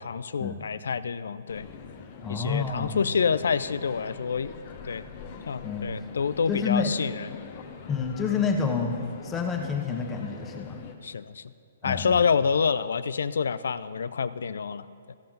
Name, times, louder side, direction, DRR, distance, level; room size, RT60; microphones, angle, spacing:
voice 1, 0.0-1.7 2.3-4.5 4.8-5.0 5.5-7.3 11.0-11.5 11.8-15.2, left 6 dB, 75° left, 15 dB, 0.3 m, -27 dB
sound 1, 1.5-10.9, left 5 dB, 40° left, 1.0 m, -44 dB
voice 2, 2.2-3.0 5.6-5.9 6.5-6.9 7.9-8.9 9.2-10.8 11.8-12.2, left 5 dB, 15° left, 2 dB, 1.1 m, -28 dB
15.0 x 5.7 x 3.8 m, 2.3 s
hypercardioid pair, 140°, 0 cm